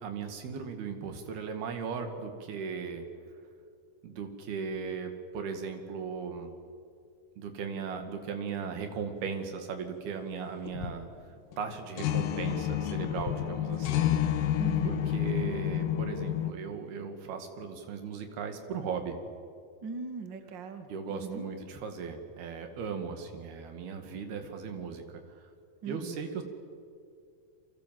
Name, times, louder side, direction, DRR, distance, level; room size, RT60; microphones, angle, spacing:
voice 1, 0.0-3.1 4.0-6.5 7.4-11.1 11.6-14.1 14.8-19.2 20.9-25.4 25.8-26.4, right 6 dB, 75° right, 6 dB, 4.2 m, -37 dB
sound 1, 10.7-11.1 11.5-11.6 12.0-16.5, left 11 dB, 70° left, 2.4 m, -29 dB
voice 2, 14.6-15.1 19.8-21.4 25.8-26.2, right 5 dB, 45° right, 7 dB, 1.6 m, -39 dB
29.5 x 24.0 x 7.7 m, 2.3 s
omnidirectional pair, 4.6 m